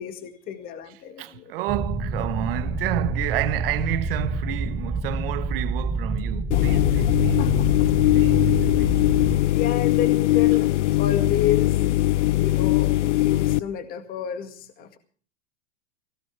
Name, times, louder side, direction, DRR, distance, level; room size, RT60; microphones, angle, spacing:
voice 1, 0.0-1.5 7.4-7.9 9.5-10.7 11.0-12.9 13.2-15.0, left 10 dB, 25° left, 1.9 m, -30 dB
voice 2, 1.2-7.4 8.1-8.5 8.8-9.0, right 15 dB, 50° right, 1.3 m, -30 dB
sound 1, 1.7-9.4, right 3 dB, ahead, 1.8 m, -28 dB
sound 2, 6.5-13.6, left 16 dB, 75° left, 0.7 m, -20 dB
23.0 x 17.5 x 3.4 m
supercardioid pair, 165°, 36 cm